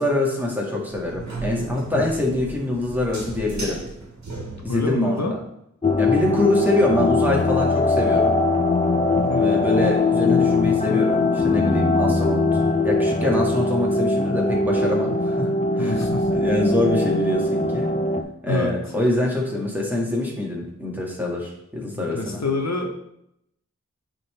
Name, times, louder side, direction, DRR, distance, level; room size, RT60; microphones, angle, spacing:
voice 1, 0.0-3.8 4.6-5.3 6.0-8.4 9.4-15.9 16.3-17.9 18.4-22.4, left 2 dB, 5° right, -3 dB, 1.9 m, -24 dB
sound 1, 0.9-5.0, right 3 dB, 70° right, 1.4 m, -34 dB
voice 2, 4.7-5.4 9.1-9.5 15.8-16.3 18.5-18.7 21.9-22.9, left 2 dB, 65° left, 2 dB, 0.9 m, -26 dB
sound 2, 5.8-18.2, left 3 dB, 25° left, 0.6 m, -21 dB
9.5 x 3.8 x 3.4 m, 0.78 s
wide cardioid pair, 60°, 29 cm